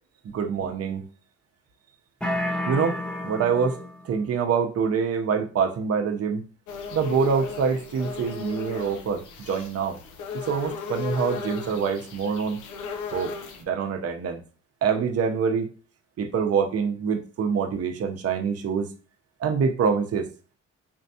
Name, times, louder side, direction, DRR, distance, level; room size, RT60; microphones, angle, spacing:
voice 1, 0.3-1.0 2.7-3.0 3.2-3.8 4.0-6.4 6.9-10.0 10.5-12.6 13.1-13.3 13.6-14.4 14.8-15.7 16.2-18.9 19.4-20.3, right 6 dB, 50° right, 4 dB, 0.8 m, -25 dB
sound 1, 2.2-4.1, left 1 dB, 5° left, 0.6 m, -30 dB
sound 2, 6.7-13.6, left 5 dB, 80° left, 0.8 m, -36 dB
4.4 x 3.2 x 2.7 m, 0.37 s
cardioid pair, 90°, 30 cm